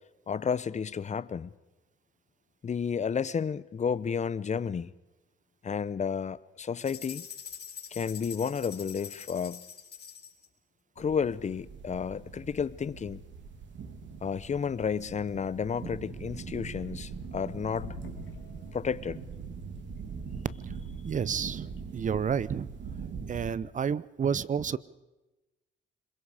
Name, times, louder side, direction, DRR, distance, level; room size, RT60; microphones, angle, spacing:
voice 1, 0.3-1.5 2.6-4.9 5.6-7.3 7.9-9.6 11.0-13.2 14.2-17.9 18.7-19.2, left 6 dB, 35° left, 0.8 m, -31 dB
sound 1, 6.8-10.5, left 8 dB, 55° left, 4.5 m, -44 dB
sound 2, 11.0-23.5, right 5 dB, 65° right, 3.0 m, -42 dB
sound 3, 17.0-22.4, left 8 dB, 90° left, 3.0 m, -52 dB
voice 2, 21.0-22.7 23.3-24.8, right 7 dB, 40° right, 0.7 m, -30 dB
26.0 x 22.5 x 5.0 m
cardioid pair, 90°, 20 cm